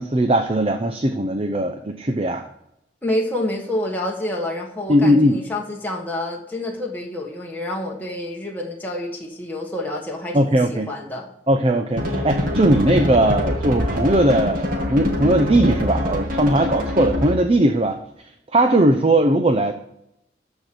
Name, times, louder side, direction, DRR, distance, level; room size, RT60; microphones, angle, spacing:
voice 1, 0.0-2.5 4.9-5.4 10.3-10.9 11.5-18.0 18.5-19.7, right 1 dB, 30° right, 6 dB, 0.7 m, -19 dB
voice 2, 3.0-11.3, left 1 dB, 10° left, -2 dB, 1.6 m, -28 dB
sound 1, 12.0-17.5, left 1 dB, 50° right, 2.2 m, -24 dB
13.5 x 4.5 x 8.0 m, 0.80 s
head